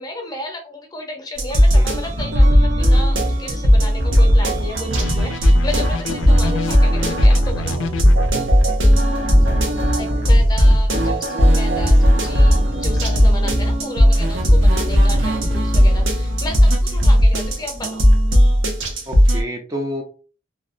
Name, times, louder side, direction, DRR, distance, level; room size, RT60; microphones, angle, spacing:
voice 1, 0.0-7.9 10.0-18.6, left 1 dB, 20° left, 2 dB, 0.7 m, -33 dB
sound 1, 1.4-19.4, equal, 85° right, 0.7 m, -15 dB
sound 2, 5.0-8.3, left 3 dB, 80° left, 0.3 m, -28 dB
voice 2, 9.4-10.4 19.1-20.0, equal, 20° right, 1 dB, 0.4 m, -31 dB
2.6 x 2.1 x 2.5 m, 0.36 s
head